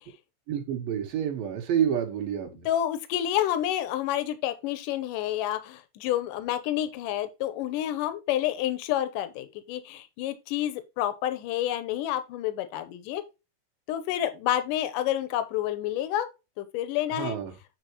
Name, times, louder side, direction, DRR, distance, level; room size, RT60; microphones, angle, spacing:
voice 1, 0.5-2.7 17.1-17.5, right 9 dB, 80° right, 3.2 m, -28 dB
voice 2, 2.7-13.2 13.9-16.3 16.6-17.4, left 12 dB, 75° left, 2.4 m, -29 dB
9.1 x 4.7 x 3.0 m
omnidirectional pair, 4.1 m